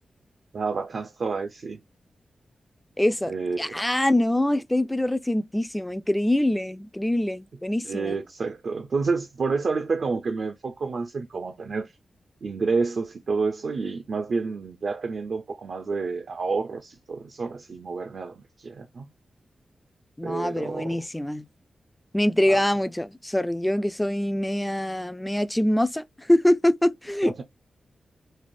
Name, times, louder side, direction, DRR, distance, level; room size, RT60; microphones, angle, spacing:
voice 1, 0.5-1.8 3.3-3.8 7.8-11.9 12.4-19.1 20.2-21.0 22.5-22.6 27.2-27.4, right 4 dB, 65° right, 0.5 m, -29 dB
voice 2, 3.0-8.2 20.2-21.5 22.1-27.4, left 1 dB, 10° left, 0.3 m, -24 dB
3.2 x 2.1 x 2.5 m
cardioid pair, 75°, 0 cm